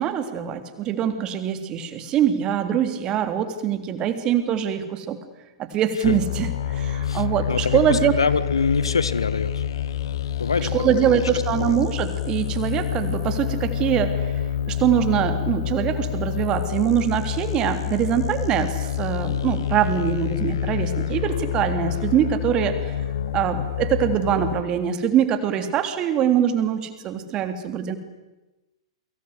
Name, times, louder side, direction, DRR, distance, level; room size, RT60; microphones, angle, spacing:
voice 1, 0.0-5.2 5.6-8.1 10.6-14.3 14.6-22.9 23.3-28.0, right 9 dB, 30° right, 9 dB, 3.3 m, -23 dB
sound 1, 6.0-24.6, left 9 dB, 60° left, 1.7 m, -27 dB
voice 2, 7.0-9.6 10.4-11.2 11.5-11.8, left 5 dB, 75° left, 16 dB, 1.5 m, -25 dB
29.5 x 24.5 x 8.2 m, 1.1 s
figure-of-eight pair, 105°, 3 cm